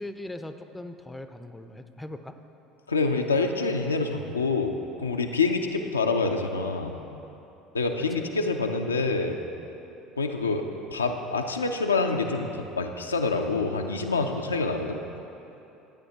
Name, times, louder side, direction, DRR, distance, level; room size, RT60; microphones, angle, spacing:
voice 1, 0.0-2.3 8.1-8.3, left 1 dB, 10° left, 8 dB, 0.5 m, -40 dB
voice 2, 2.9-7.0 7.7-9.4 10.2-10.6 10.9-12.5 12.8-15.0, left 3 dB, 90° left, 3 dB, 0.4 m, -26 dB
13.0 x 8.7 x 2.8 m, 3.0 s
hypercardioid pair, 65°, 0 cm